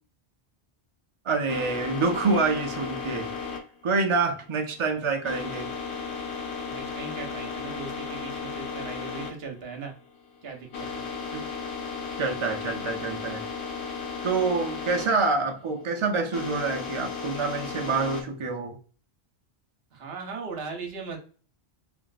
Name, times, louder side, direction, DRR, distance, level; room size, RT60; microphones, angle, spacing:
voice 1, 1.3-3.3 3.8-5.7 11.3-11.4 12.2-13.4 14.2-18.8, right 4 dB, 40° right, 0.4 m, -27 dB
sound 1, 1.5-18.2, left 5 dB, 85° left, 1.0 m, -35 dB
voice 2, 6.7-9.9 10.4-11.0 19.9-21.2, right 4 dB, 70° right, 1.0 m, -38 dB
3.0 x 2.6 x 2.3 m
omnidirectional pair, 1.1 m